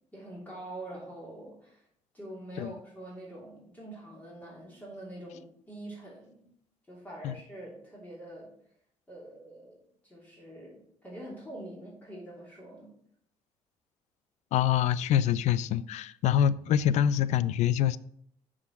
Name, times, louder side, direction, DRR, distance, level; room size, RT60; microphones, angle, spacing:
voice 1, 0.1-1.9 2.1-6.5 6.9-8.5 9.1-12.9, right 1 dB, 15° left, 3.0 m, -45 dB
voice 2, 14.5-18.0, left 10 dB, 75° left, 0.4 m, -25 dB
6.7 x 5.0 x 5.8 m
cardioid pair, 100°, 12 cm